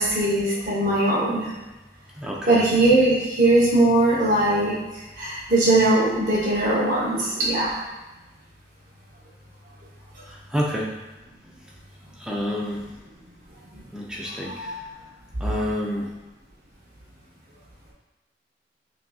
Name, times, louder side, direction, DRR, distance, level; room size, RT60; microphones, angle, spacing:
voice 1, 0.0-1.5 2.5-4.8 5.2-7.7 13.7-13.8 14.4-14.8, right 2 dB, 50° right, -7 dB, 0.9 m, -20 dB
voice 2, 2.2-2.6 10.3-10.9 12.2-12.8 13.9-14.7 15.4-16.1, left 1 dB, 5° right, -4 dB, 0.5 m, -28 dB
6.1 x 2.6 x 2.3 m, 1.1 s
head